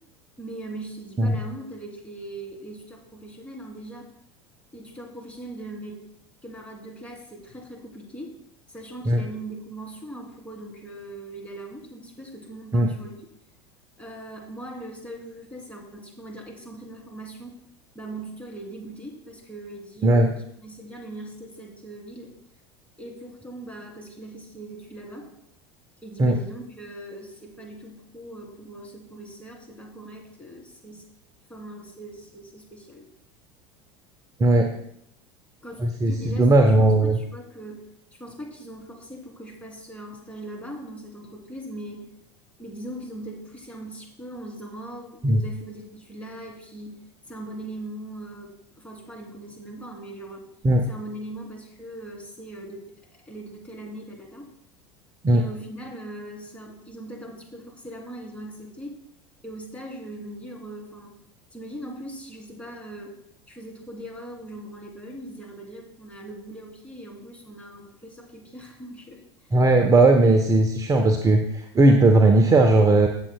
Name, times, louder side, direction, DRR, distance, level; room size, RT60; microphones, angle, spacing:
voice 1, 0.4-4.1 4.7-6.1 6.4-8.4 8.7-13.2 14.0-17.5 17.9-20.3 20.6-22.3 23.0-25.3 26.0-31.0 31.5-33.1 35.6-42.1 42.6-50.5 50.9-52.8 53.1-54.5 55.3-59.0 59.4-61.2 61.5-63.2 63.5-69.7, right 1 dB, 10° left, 0 dB, 2.9 m, -40 dB
voice 2, 34.4-34.7 35.8-37.2 45.2-45.4 50.6-50.8 55.2-55.4 69.5-73.1, right 2 dB, 25° right, 4 dB, 0.9 m, -18 dB
16.0 x 7.4 x 2.2 m, 0.73 s
hypercardioid pair, 75°, 15 cm